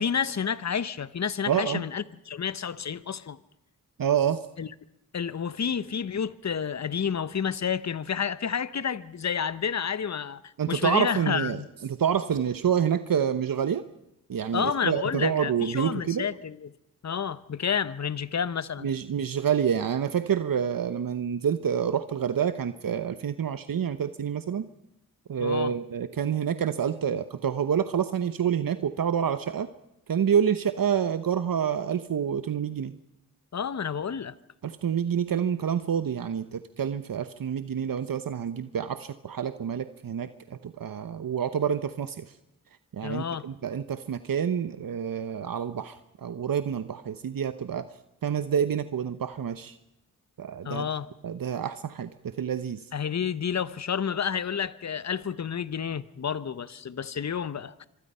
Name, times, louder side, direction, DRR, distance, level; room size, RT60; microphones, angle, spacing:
voice 1, 0.0-3.4 4.6-4.7 5.1-11.7 14.5-16.7 17.0-18.9 25.4-25.7 33.5-34.3 43.0-43.5 50.6-51.1 52.9-57.9, left 7 dB, 50° left, 0.9 m, -30 dB
voice 2, 1.5-1.8 4.0-4.4 10.6-13.8 14.3-16.2 18.8-24.7 25.3-29.7 30.1-32.9 34.6-40.3 40.6-42.2 42.9-46.0 46.2-47.8 48.2-49.8 50.4-50.9 51.2-52.1 52.4-52.8, right 8 dB, 75° right, 1.0 m, -27 dB
25.5 x 23.5 x 5.6 m
wide cardioid pair, 75°, 35 cm